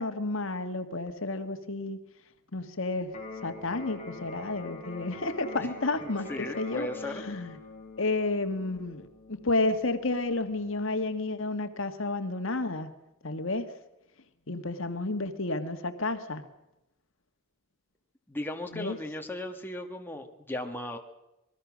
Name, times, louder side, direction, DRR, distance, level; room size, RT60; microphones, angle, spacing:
voice 1, 0.0-2.0 2.5-3.1 3.4-6.9 7.1-7.5 8.0-12.9 13.2-13.7 14.5-16.4 18.7-19.0, left 2 dB, 65° left, 8 dB, 1.7 m, -31 dB
Electric guitar, 3.1-11.1, left 3 dB, 30° left, 4.2 m, -45 dB
voice 2, 6.0-7.2 18.3-21.0, left 1 dB, 10° left, 3 dB, 1.8 m, -37 dB
27.5 x 20.5 x 6.3 m, 0.91 s
head